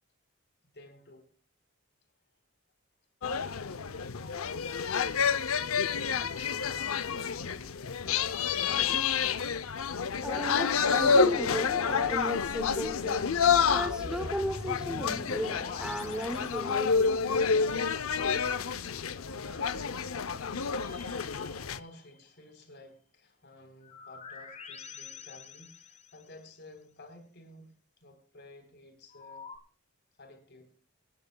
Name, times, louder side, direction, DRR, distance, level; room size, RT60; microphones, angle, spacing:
voice 1, 0.7-1.3 21.4-27.7 28.0-29.5 30.2-30.7, left 2 dB, 55° left, 3.8 m, -53 dB
sound 1, 3.2-21.8, left 6 dB, 85° left, 0.6 m, -29 dB
voice 2, 10.0-13.3 13.6-17.2 17.9-18.0 19.4-19.7, equal, 5° right, 0.8 m, -36 dB
sound 2, 12.7-17.3 20.6-22.4 23.8-26.4 29.1-29.6, left 2 dB, 35° left, 1.8 m, -46 dB
26.0 x 10.5 x 2.3 m
head